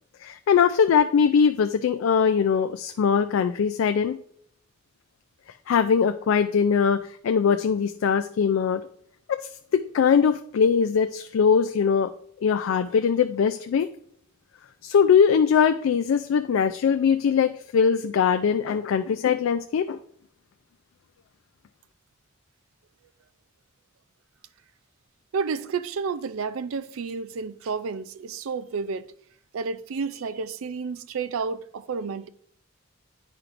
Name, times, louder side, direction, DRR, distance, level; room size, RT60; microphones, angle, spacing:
voice 1, 0.2-4.2 5.7-8.8 9.3-9.4 9.7-12.1 12.4-13.9 14.8-20.0, left 6 dB, 80° left, 0.3 m, -21 dB
voice 2, 25.3-29.1 29.5-32.3, right 5 dB, 85° right, 0.4 m, -31 dB
10.5 x 4.5 x 2.5 m
head